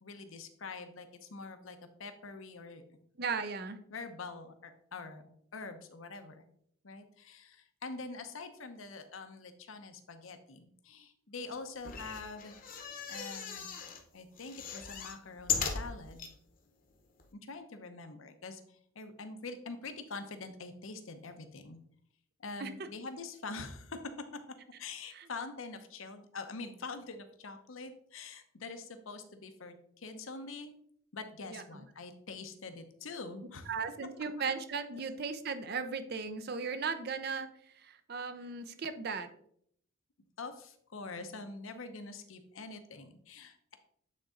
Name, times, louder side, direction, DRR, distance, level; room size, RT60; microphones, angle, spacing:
voice 1, 0.0-2.8 3.9-6.4 6.8-12.6 13.1-13.7 14.1-16.3 17.3-21.8 22.4-24.0 24.8-30.7 31.1-33.7 34.9-35.1 38.4-38.5 40.4-43.8, left 3 dB, 75° left, 8 dB, 0.8 m, -45 dB
voice 2, 3.2-3.8 22.6-22.7 25.1-25.3 31.5-31.6 33.7-37.5 37.8-39.3, right 5 dB, 50° right, 10 dB, 0.5 m, -36 dB
sound 1, 11.8-14.0 14.4-16.3 16.9-17.0 17.2-17.3, left 6 dB, 40° left, 0.9 m, -38 dB
8.6 x 3.9 x 3.8 m, 0.66 s
head